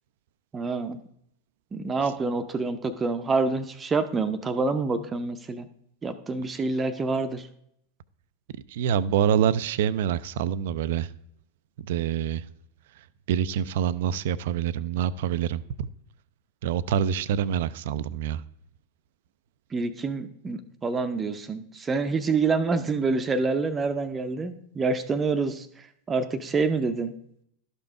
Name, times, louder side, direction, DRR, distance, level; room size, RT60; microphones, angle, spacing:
voice 1, 0.5-1.0 1.7-5.7 6.0-7.5 19.7-27.1, right 4 dB, 20° right, 0.7 m, -27 dB
voice 2, 8.7-11.1 11.8-12.4 13.3-15.9 16.6-18.4, right 9 dB, 55° right, 0.4 m, -26 dB
12.0 x 5.4 x 4.7 m
figure-of-eight pair, 90°, 0 cm